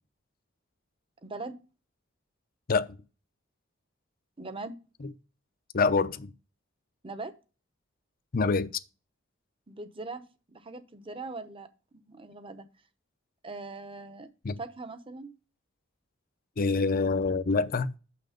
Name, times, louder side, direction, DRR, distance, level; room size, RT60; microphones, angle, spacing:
voice 1, 1.2-1.6 4.4-4.8 7.0-7.3 9.7-10.2 10.5-11.7 12.1-12.7 13.4-14.3 14.6-15.3, right 3 dB, 25° right, 1.0 m, -40 dB
voice 2, 5.7-6.3 8.3-8.7 14.4-14.6 16.6-18.0, left 4 dB, 45° left, 0.6 m, -25 dB
7.6 x 6.0 x 5.1 m
head